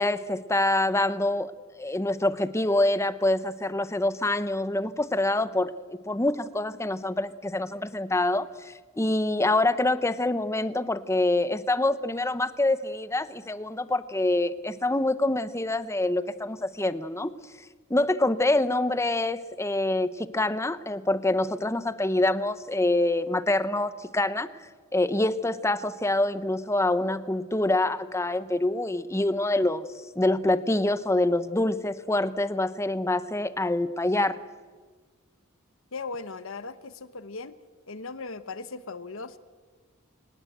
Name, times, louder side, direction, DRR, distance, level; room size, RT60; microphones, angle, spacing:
voice 1, 0.0-1.5 1.8-5.7 6.1-17.3 17.9-29.9 30.2-34.4, left 2 dB, 15° left, 14 dB, 0.8 m, -26 dB
voice 2, 35.9-37.6 37.9-39.4, left 4 dB, 65° left, 13 dB, 1.0 m, -38 dB
24.5 x 19.5 x 8.0 m, 1.5 s
head